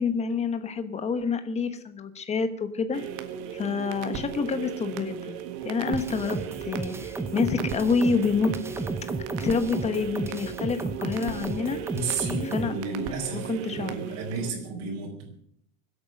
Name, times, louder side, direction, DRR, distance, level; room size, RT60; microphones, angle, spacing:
voice 1, 0.0-3.1 3.5-6.4 6.6-8.5 9.4-11.8 12.5-12.8 13.3-13.9, left 5 dB, 15° left, 10 dB, 1.1 m, -28 dB
sound 1, 2.9-14.5, right 9 dB, 60° right, 1.7 m, -36 dB
sound 2, 5.9-12.7, right 3 dB, 5° right, 0.5 m, -34 dB
voice 2, 11.9-15.4, right 3 dB, 40° right, -1 dB, 4.8 m, -33 dB
23.5 x 8.5 x 6.6 m, 0.70 s
supercardioid pair, 150°, 41 cm